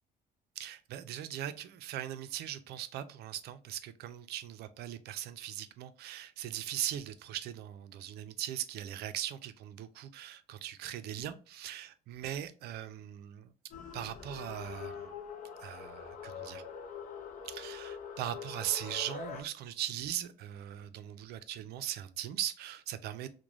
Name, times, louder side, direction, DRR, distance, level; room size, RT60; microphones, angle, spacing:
voice 1, 0.6-13.5 13.9-15.1 15.6-16.6 17.4-23.3, right 11 dB, 70° right, 0.4 m, -39 dB
T-Rex Calls, 13.7-19.4, left 6 dB, 50° left, 0.6 m, -44 dB
3.0 x 2.1 x 2.3 m
cardioid pair, 110°, 17 cm